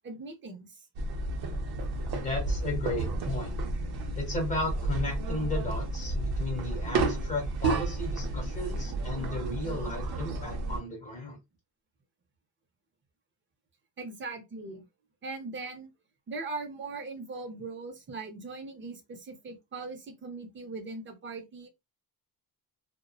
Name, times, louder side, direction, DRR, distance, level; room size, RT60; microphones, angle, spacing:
voice 1, 0.0-0.9 14.0-14.8 15.2-15.9 16.3-21.7, right 3 dB, 30° right, 0.6 m, -40 dB
sound 1, 1.0-10.8, right 2 dB, 75° right, 0.7 m, -32 dB
voice 2, 2.2-3.6 4.2-11.4, left 2 dB, 20° left, 1.3 m, -34 dB
2.5 x 2.1 x 2.2 m
wide cardioid pair, 155°, 38 cm